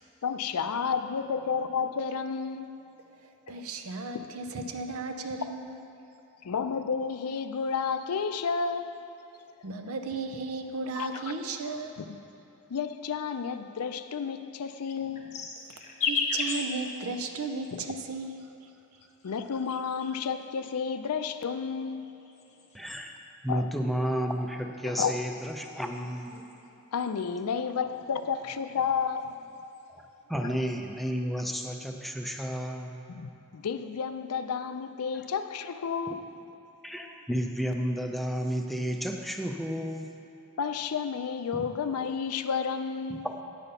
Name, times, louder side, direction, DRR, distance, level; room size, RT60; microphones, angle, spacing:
voice 1, 0.2-2.7 4.1-4.2 6.4-8.9 10.9-11.2 12.0-12.2 12.7-15.5 17.7-17.8 19.2-22.1 23.5-23.6 24.8-25.2 26.9-29.5 30.4-30.5 33.1-36.2 40.6-43.3, left 6 dB, 90° left, 10 dB, 0.5 m, -31 dB
voice 2, 3.5-5.8 9.6-12.0 16.1-18.5, right 3 dB, 75° right, 6 dB, 0.7 m, -35 dB
sound 1, 14.6-18.0 18.9-20.3 21.1-23.0 24.4-26.6 27.0-27.5 27.8-28.9 29.2-29.8, left 4 dB, 35° left, 0.9 m, -37 dB
voice 3, 22.7-23.1 23.4-26.5 29.9-30.0 30.3-33.0 36.8-40.1 41.5-41.7 43.1-43.4, equal, ahead, 3 dB, 0.5 m, -32 dB
9.0 x 7.0 x 5.5 m, 2.8 s
head